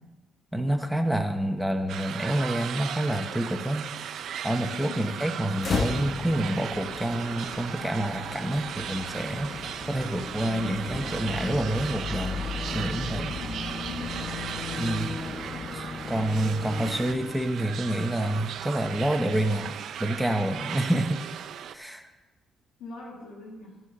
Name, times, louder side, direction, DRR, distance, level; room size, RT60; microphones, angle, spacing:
voice 1, 0.5-3.9 4.4-13.3 14.8-15.2 15.7-19.7 20.0-21.2 21.7-22.0, right 1 dB, 5° right, 5 dB, 0.9 m, -28 dB
sound 1, 1.9-21.7, right 9 dB, 70° right, 0.5 m, -37 dB
voice 2, 4.8-5.2 13.4-14.3 22.8-23.8, left 2 dB, 85° left, -2 dB, 1.9 m, -41 dB
sound 2, 5.6-17.6, left 4 dB, 45° left, 0.9 m, -35 dB
12.5 x 5.6 x 6.7 m, 1.1 s
cardioid pair, 90°, 0 cm